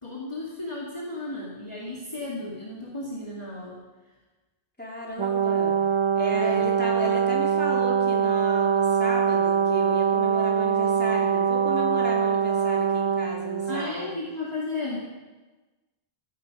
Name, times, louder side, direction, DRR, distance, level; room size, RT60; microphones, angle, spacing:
voice 1, 0.0-3.8 6.3-6.7 13.7-15.1, left 2 dB, 30° left, -5 dB, 2.1 m, -34 dB
voice 2, 4.8-5.8 6.1-14.2, equal, 10° left, -4 dB, 3.3 m, -34 dB
Brass instrument, 5.2-13.9, right 7 dB, 40° right, 0.5 m, -23 dB
15.0 x 11.5 x 5.3 m, 1.2 s
omnidirectional pair, 1.0 m